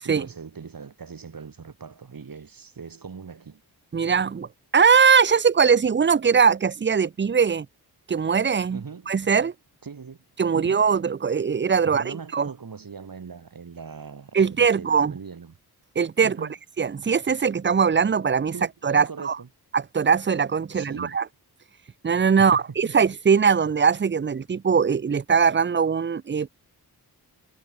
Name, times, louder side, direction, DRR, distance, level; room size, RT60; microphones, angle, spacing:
voice 1, 0.0-3.6 8.7-9.2 9.8-10.2 10.5-10.9 11.9-15.5 16.2-16.5 18.5-19.5 20.7-21.2 22.4-23.0, right 5 dB, 55° right, 7.5 m, -40 dB
voice 2, 3.9-7.7 8.1-9.5 10.4-12.5 14.3-15.1 16.0-16.4 16.8-18.5 18.8-19.4 19.7-21.2 22.0-26.5, right 6 dB, 30° right, 0.6 m, -21 dB
cardioid pair, 65°, 40 cm